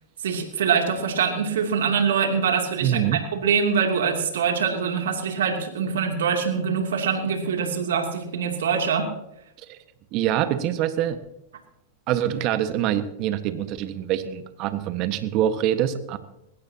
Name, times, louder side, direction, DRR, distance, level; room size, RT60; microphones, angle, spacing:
voice 1, 0.2-9.1, right 6 dB, 80° right, 3 dB, 2.8 m, -24 dB
voice 2, 2.8-3.2 9.7-9.8 10.1-11.2 12.1-16.2, right 11 dB, 50° right, 10 dB, 1.5 m, -25 dB
20.5 x 17.0 x 2.9 m, 0.82 s
hypercardioid pair, 105°, 0 cm